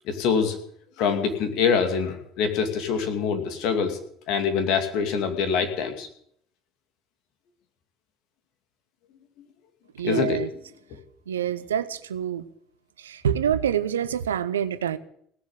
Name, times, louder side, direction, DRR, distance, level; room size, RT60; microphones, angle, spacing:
voice 1, 0.1-0.6 1.0-4.0 4.3-6.1 10.0-10.4, left 6 dB, 65° left, 8 dB, 2.5 m, -24 dB
voice 2, 10.0-10.5 11.3-12.4 13.0-15.0, right 9 dB, 85° right, 14 dB, 0.7 m, -26 dB
17.5 x 7.3 x 9.8 m, 0.66 s
hypercardioid pair, 65°, 0 cm